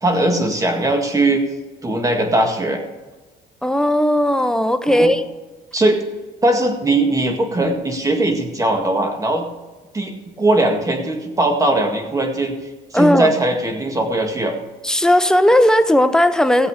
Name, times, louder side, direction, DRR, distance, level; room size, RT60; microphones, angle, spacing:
voice 1, 0.0-1.4 1.8-2.8 4.9-5.1 5.7-6.0 6.4-9.5 9.9-10.1 10.4-12.5 12.9-14.6, right 2 dB, 20° right, 4 dB, 1.9 m, -19 dB
voice 2, 3.6-5.2 12.9-13.3 14.8-16.7, left 1 dB, 5° left, 10 dB, 0.6 m, -16 dB
16.5 x 7.8 x 4.9 m, 1.2 s
cardioid pair, 110°, 17 cm